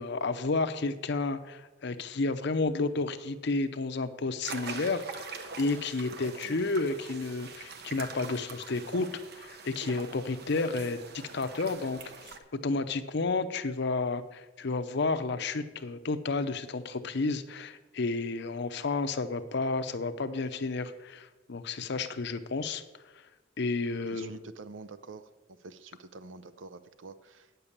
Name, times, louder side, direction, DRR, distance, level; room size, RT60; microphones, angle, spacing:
voice 1, 0.0-5.3 5.6-12.3 12.6-22.8 23.6-24.3, left 3 dB, 65° left, 9 dB, 0.7 m, -31 dB
sound 1, 4.4-12.4, right 4 dB, 60° right, 0.9 m, -43 dB
voice 2, 24.0-25.3 25.6-27.7, right 3 dB, 75° right, 13 dB, 0.6 m, -47 dB
9.2 x 6.8 x 7.2 m, 1.2 s
head